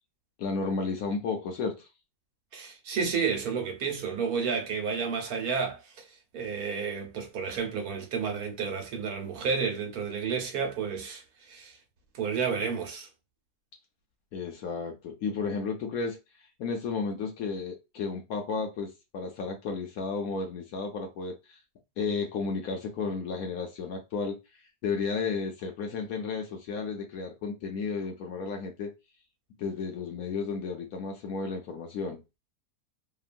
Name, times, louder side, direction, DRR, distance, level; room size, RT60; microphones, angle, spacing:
voice 1, 0.4-1.9 14.3-16.2 16.6-21.6 22.0-24.4 24.8-28.9 29.6-32.2, left 4 dB, 70° left, 0.9 m, -33 dB
voice 2, 2.5-6.1 6.3-11.8 12.1-13.1, right 6 dB, 65° right, 1.1 m, -31 dB
2.9 x 2.3 x 2.4 m
omnidirectional pair, 1.8 m